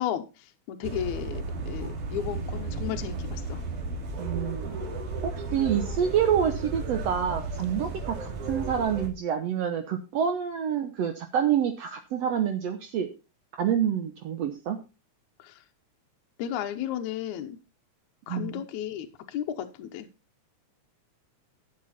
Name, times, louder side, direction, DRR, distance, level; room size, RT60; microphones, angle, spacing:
voice 1, 0.0-3.6 15.4-15.6 16.4-17.6 18.3-20.1, left 10 dB, 75° left, 6 dB, 2.2 m, -34 dB
sound 1, 0.8-9.1, right 3 dB, 80° right, 3.9 m, -34 dB
voice 2, 4.2-4.8 5.2-13.1 13.6-14.8 18.3-18.6, right 8 dB, 65° right, 6 dB, 1.9 m, -27 dB
12.0 x 7.9 x 4.2 m, 0.29 s
omnidirectional pair, 3.5 m